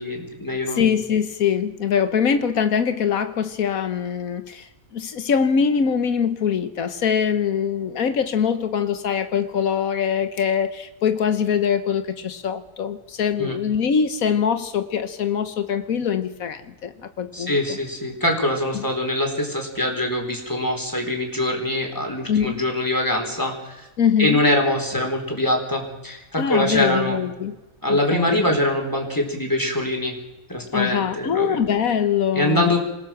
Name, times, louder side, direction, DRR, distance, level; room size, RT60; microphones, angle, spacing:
voice 1, 0.0-0.9 13.4-13.6 17.3-23.8 24.2-27.2 27.8-30.2 30.5-31.6 32.3-32.8, left 1 dB, 15° left, 1 dB, 4.3 m, -23 dB
voice 2, 0.7-4.7 4.9-17.8 18.7-18.9 22.3-22.6 24.0-24.4 26.4-27.6 27.9-28.4 30.7-32.7, left 7 dB, 90° left, 10 dB, 1.6 m, -23 dB
27.5 x 17.0 x 6.0 m, 1.1 s
omnidirectional pair, 1.4 m